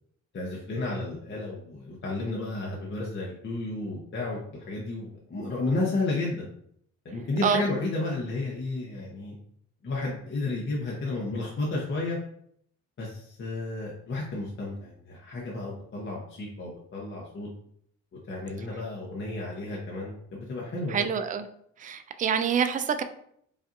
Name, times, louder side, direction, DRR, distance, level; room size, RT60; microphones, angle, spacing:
voice 1, 0.3-6.5 7.0-9.3 9.8-12.2 13.0-17.5 18.3-21.1, left 2 dB, 40° left, -3 dB, 0.9 m, -32 dB
voice 2, 20.9-21.4 21.8-23.0, right 7 dB, 25° right, 9 dB, 0.4 m, -26 dB
5.0 x 2.5 x 2.6 m, 0.68 s
cardioid pair, 90°, 30 cm